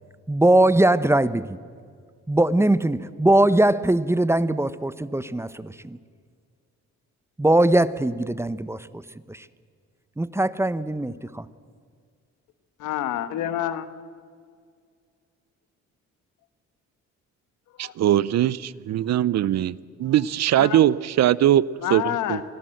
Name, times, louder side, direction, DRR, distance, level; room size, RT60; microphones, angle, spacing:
voice 1, 0.3-1.6 2.3-6.0 7.4-9.0 9.3-9.4 10.2-11.5, right 1 dB, 10° right, 0.8 m, -21 dB
voice 2, 12.8-13.9 17.8-17.9 20.5-20.8 21.8-22.4, left 11 dB, 80° left, 1.4 m, -28 dB
voice 3, 17.8-21.6 21.9-22.4, right 12 dB, 60° right, 0.6 m, -21 dB
25.5 x 17.0 x 7.8 m
cardioid pair, 90°, 30 cm